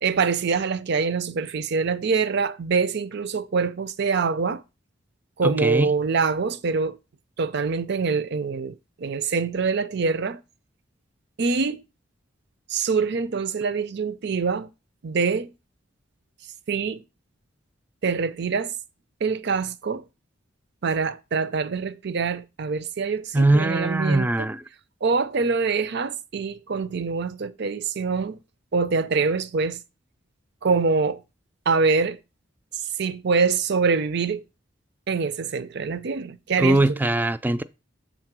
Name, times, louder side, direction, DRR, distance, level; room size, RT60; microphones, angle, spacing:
voice 1, 0.0-4.6 5.4-7.0 7.4-10.4 11.4-11.8 12.7-14.7 15.0-15.5 16.7-17.0 18.0-18.7 19.2-20.0 20.8-24.3 25.0-28.4 28.7-29.8 30.6-31.2 31.7-32.2 33.0-34.4 35.1-37.0, right 4 dB, 60° right, 0.5 m, -24 dB
voice 2, 5.4-5.9 23.3-24.6 36.6-37.6, right 2 dB, 10° right, 0.3 m, -21 dB
7.2 x 3.9 x 5.9 m
head